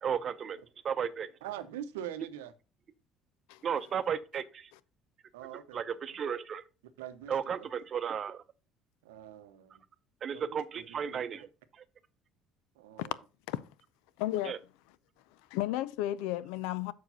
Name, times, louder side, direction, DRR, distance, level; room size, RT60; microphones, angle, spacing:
voice 1, 0.0-0.6 0.8-1.3 3.6-4.7 5.5-6.6 7.3-8.4 10.2-11.5 11.7-11.8 14.4-14.6, right 7 dB, 45° right, 0.7 m, -34 dB
voice 2, 1.4-2.5 5.3-5.8 7.0-7.7 9.0-9.8 10.3-11.5 12.8-13.2, right 10 dB, 85° right, 0.7 m, -44 dB
voice 3, 14.2-14.6 15.5-16.9, left 14 dB, 80° left, 0.5 m, -33 dB
6.5 x 4.7 x 5.5 m
hypercardioid pair, 75°, 0 cm